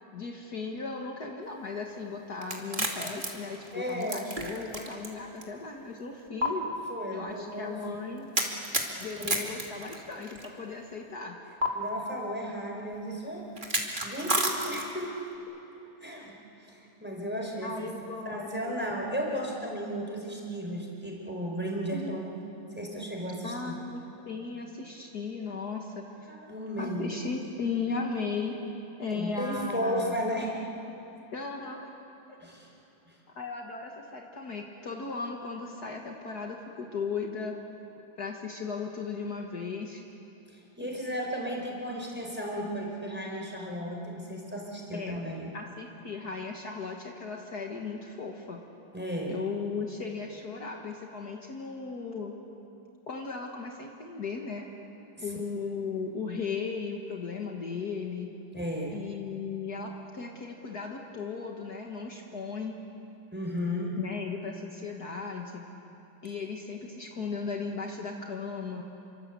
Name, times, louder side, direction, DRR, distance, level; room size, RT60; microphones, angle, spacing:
voice 1, 0.1-6.7 7.1-8.3 9.0-11.4 17.6-18.7 21.9-22.2 23.4-26.3 26.8-28.6 29.0-30.2 31.3-31.9 32.3-32.4 33.4-37.5 38.2-40.0 44.9-45.2 45.5-48.6 49.3-52.3 53.1-54.7 55.2-58.4 58.9-62.8 64.0-65.6 66.2-68.8, left 4 dB, 55° left, 1 dB, 2.1 m, -36 dB
sound 1, 2.4-5.1 5.4-5.5 6.4-6.5 8.3-10.5 11.6-11.7 13.6-15.1, right 1 dB, 25° right, 2.7 m, -30 dB
voice 2, 3.7-4.3 6.9-7.8 9.2-9.4 11.7-13.5 14.0-15.1 16.0-17.9 18.2-22.3 22.7-23.7 26.3-27.1 29.1-30.6 32.4-32.7 40.5-45.5 48.9-49.3 55.2-55.3 58.5-59.0 63.3-64.0, equal, 5° right, -1 dB, 4.5 m, -34 dB
29.0 x 24.5 x 8.4 m, 3.0 s
omnidirectional pair, 2.1 m